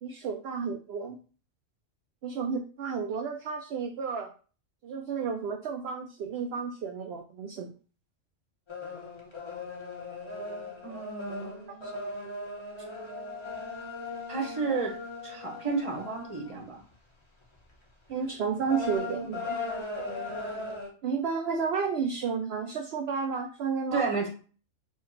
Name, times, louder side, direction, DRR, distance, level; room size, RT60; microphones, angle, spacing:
voice 1, 0.0-1.2 2.2-4.3 4.8-7.7 11.8-11.9 18.1-19.6 21.0-24.1, right 6 dB, 65° right, 3 dB, 0.7 m, -32 dB
sound 1, 8.7-16.9 17.4-17.7 18.1-20.9, left 3 dB, 25° left, 0.9 m, -38 dB
voice 2, 10.8-12.0 14.3-14.9 15.2-16.8 23.9-24.3, right 4 dB, 25° right, 1 dB, 1.0 m, -32 dB
4.4 x 2.3 x 4.4 m, 0.38 s
omnidirectional pair, 1.3 m